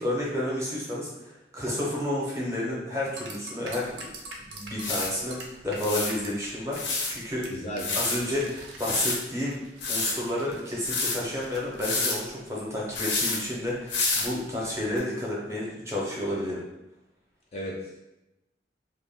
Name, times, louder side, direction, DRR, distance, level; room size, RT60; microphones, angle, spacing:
voice 1, 0.0-4.0 4.4-6.8 7.1-7.5 7.9-9.6 9.9-16.6, left 1 dB, 15° right, -5 dB, 0.6 m, -31 dB
sound 1, 3.2-6.5 6.8-7.1 7.4-7.5 7.8-11.8, right 3 dB, 75° right, 0.5 m, -43 dB
sound 2, 4.0-4.1 4.8-5.1 5.8-6.1 6.7-7.1 7.8-8.2 8.8-9.2 9.8-10.1 10.8-11.2 11.8-12.2 12.9-13.4 13.9-14.3 15.0-15.1, left 3 dB, 85° left, 0.6 m, -28 dB
voice 2, 7.5-8.2 17.5-18.0, equal, 35° left, -2 dB, 0.4 m, -35 dB
2.2 x 2.0 x 3.4 m, 0.94 s
head